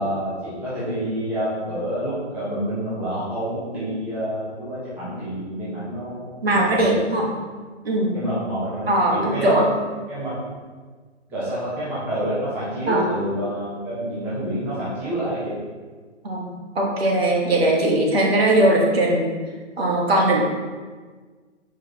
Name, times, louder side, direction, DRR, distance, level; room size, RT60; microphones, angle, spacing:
voice 1, 0.0-7.0 8.1-9.6 10.1-10.3 11.3-15.6, right 1 dB, 5° right, -11 dB, 0.9 m, -28 dB
voice 2, 6.4-7.3 7.8-8.1 8.9-9.6 12.9-13.0 16.2-16.5 16.7-19.3 19.8-20.4, right 1 dB, 55° right, -2 dB, 1.4 m, -19 dB
6.6 x 5.0 x 3.0 m, 1.4 s
figure-of-eight pair, 140°, 37 cm